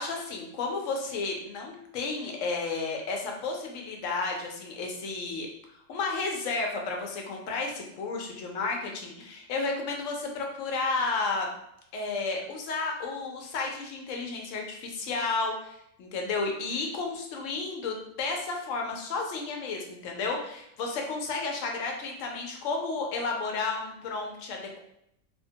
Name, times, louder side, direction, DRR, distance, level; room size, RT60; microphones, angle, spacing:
voice 1, 0.0-5.5 5.9-11.5 11.9-24.8, left 3 dB, 70° left, 1 dB, 0.9 m, -32 dB
3.0 x 2.1 x 2.7 m, 0.76 s
omnidirectional pair, 1.4 m